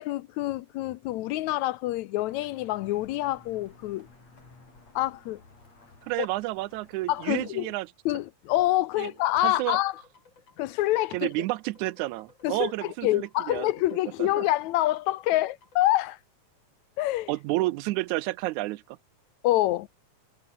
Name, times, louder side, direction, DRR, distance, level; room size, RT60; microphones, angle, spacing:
voice 1, 0.0-4.1 5.0-5.4 7.1-7.7 8.1-10.0 10.6-11.3 12.4-16.2 17.0-17.3 19.4-19.9, left 16 dB, 80° left, 2.0 m, -26 dB
sound 1, 2.2-7.5, left 3 dB, 60° left, 8.2 m, -55 dB
voice 2, 6.0-7.9 9.0-9.1 9.4-9.8 11.1-13.7 14.2-14.5 17.3-19.0, right 19 dB, 85° right, 2.0 m, -30 dB
sound 2, 9.0-15.8, left 4 dB, 40° left, 3.8 m, -60 dB
omnidirectional pair, 3.4 m